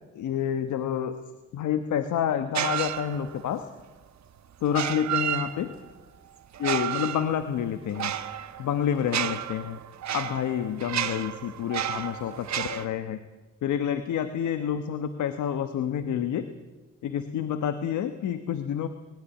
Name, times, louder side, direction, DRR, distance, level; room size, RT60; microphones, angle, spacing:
voice 1, 0.1-1.2 1.5-3.7 4.6-5.7 6.6-8.1 8.6-9.8 10.1-13.2 13.6-16.5 17.0-18.9, left 9 dB, 85° left, 9 dB, 1.2 m, -28 dB
sound 1, 2.5-3.5 4.7-5.9 6.5-12.8, right 10 dB, 70° right, 1.2 m, -32 dB
21.0 x 17.5 x 8.4 m, 1.2 s
cardioid pair, 65°, 29 cm